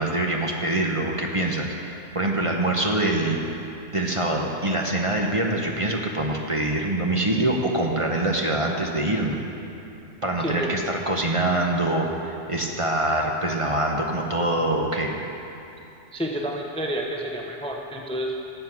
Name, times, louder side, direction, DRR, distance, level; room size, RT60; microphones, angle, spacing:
voice 1, 0.0-3.4 3.9-9.4 10.2-15.1, right 1 dB, 30° right, 0 dB, 1.0 m, -24 dB
voice 2, 10.4-10.7 16.1-18.4, equal, 5° left, 0 dB, 0.7 m, -29 dB
15.0 x 7.8 x 6.0 m, 2.8 s
omnidirectional pair, 1.2 m